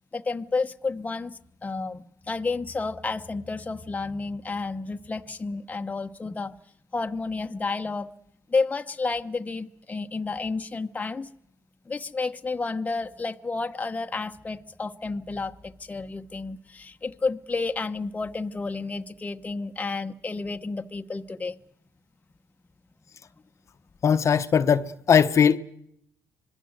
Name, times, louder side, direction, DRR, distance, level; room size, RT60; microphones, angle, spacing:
voice 1, 0.1-1.3 1.6-6.5 6.9-8.1 8.5-11.3 11.9-21.5, left 3 dB, 20° left, 1.1 m, -31 dB
voice 2, 24.0-25.6, left 7 dB, 45° left, 1.1 m, -20 dB
26.0 x 21.0 x 8.0 m
cardioid pair, 90°, 7 cm